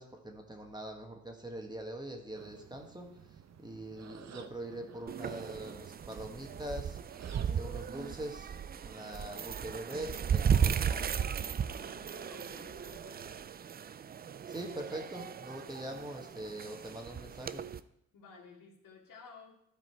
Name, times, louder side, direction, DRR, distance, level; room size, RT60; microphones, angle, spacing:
voice 1, 0.0-3.1 3.6-7.0 7.5-8.5 8.8-11.1 14.5-17.6, right 1 dB, 10° right, 3 dB, 1.4 m, -43 dB
sound 1, 2.3-7.9, right 8 dB, 50° right, 0.8 m, -54 dB
sound 2, 5.1-17.8, right 7 dB, 30° right, 0.4 m, -35 dB
voice 2, 11.7-13.4 15.6-15.7 18.1-19.6, left 4 dB, 70° left, 0 dB, 2.3 m, -54 dB
12.5 x 5.1 x 4.6 m, 0.77 s
cardioid pair, 85°, 34 cm